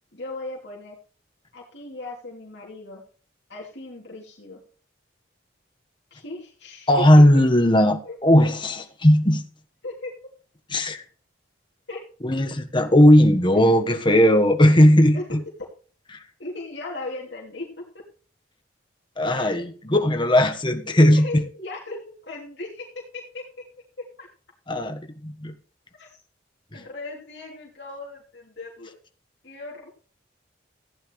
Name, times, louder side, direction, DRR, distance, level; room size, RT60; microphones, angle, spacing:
voice 1, 0.1-1.0 1.5-3.0 3.5-4.6 6.1-7.0 8.0-8.3 9.8-10.1 11.9-12.1 13.5-13.6 13.9-14.0 15.1-15.2 16.4-17.8 19.3-19.6 20.9-22.9 23.1-23.4 24.2-24.3 26.0-26.2 26.7-29.0 29.4-29.9, left 2 dB, 60° left, -2 dB, 2.9 m, -37 dB
voice 2, 6.9-9.4 10.7-11.0 12.2-15.4 19.2-21.4 24.7-25.5 26.7-26.8, left 1 dB, 25° left, 6 dB, 1.2 m, -17 dB
15.5 x 9.7 x 3.2 m, 0.40 s
head